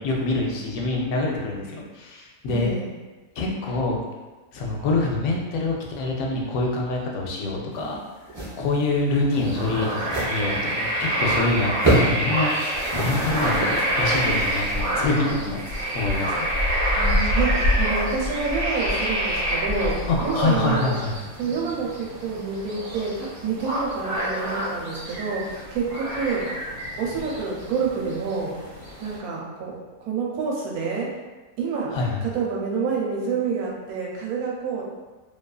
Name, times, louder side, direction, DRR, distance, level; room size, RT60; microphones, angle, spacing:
voice 1, 0.0-2.7 3.4-4.0 4.5-8.0 8.6-15.6 15.9-16.5 20.1-21.1 31.9-32.2, left 2 dB, 80° left, -1 dB, 1.0 m, -26 dB
voice 2, 2.5-2.9 17.0-21.0 21.4-26.5 27.0-28.6 29.0-31.1 31.6-34.8, right 5 dB, 90° right, -2 dB, 1.1 m, -28 dB
sound 1, 7.7-8.0 8.3-8.6 8.8-9.0 9.4-9.5 10.0-10.4 10.8-10.9 11.2-11.3 11.7-12.2 12.5-14.9, right 1 dB, 30° right, 0.5 m, -26 dB
sound 2, 9.3-29.2, equal, 60° right, 1.1 m, -27 dB
2.6 x 2.3 x 2.3 m, 1.2 s
omnidirectional pair, 1.5 m